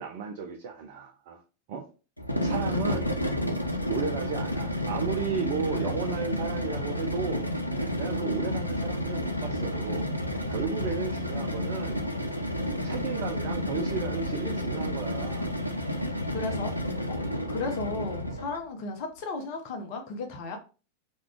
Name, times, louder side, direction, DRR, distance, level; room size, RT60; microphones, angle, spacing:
voice 1, 0.0-1.4 1.7-1.9 2.4-3.1 3.9-7.5 8.0-10.1 10.5-12.0 12.8-15.5, right 6 dB, 50° right, 0.3 m, -34 dB
sound 1, 2.2-18.6, left 1 dB, 90° left, 0.4 m, -30 dB
voice 2, 16.3-16.7 17.1-17.2 17.5-20.6, left 3 dB, 45° left, 0.6 m, -34 dB
2.3 x 2.2 x 3.4 m
figure-of-eight pair, 90°, 0 cm